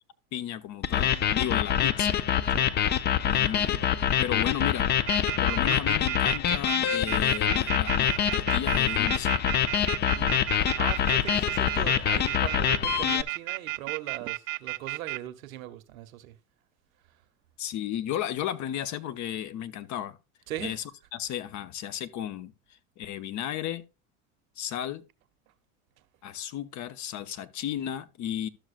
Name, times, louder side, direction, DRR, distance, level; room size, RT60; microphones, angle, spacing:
voice 1, 0.3-2.2 3.2-3.8 4.2-4.9 5.4-9.4 17.6-20.2 20.6-20.8 21.1-22.5 23.0-23.8 24.6-25.0 26.2-28.5, left 11 dB, 45° left, 0.8 m, -34 dB
sound 1, 0.8-13.2, left 10 dB, 25° left, 0.4 m, -25 dB
sound 2, 5.1-15.2, right 18 dB, 55° right, 0.5 m, -32 dB
voice 2, 10.1-16.3 20.5-20.7, right 13 dB, 75° right, 1.0 m, -39 dB
12.0 x 6.4 x 2.5 m
hypercardioid pair, 85°, 41 cm